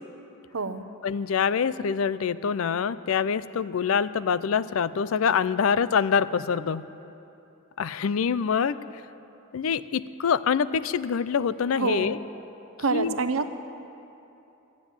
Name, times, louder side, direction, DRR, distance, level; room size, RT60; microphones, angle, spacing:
voice 1, 0.5-0.9 11.8-12.2 12.8-13.5, right 4 dB, 80° right, 10 dB, 0.7 m, -27 dB
voice 2, 1.0-6.9 7.8-8.8 9.5-12.2 12.9-13.1, left 6 dB, 75° left, 16 dB, 0.4 m, -25 dB
13.0 x 9.2 x 9.5 m, 2.9 s
head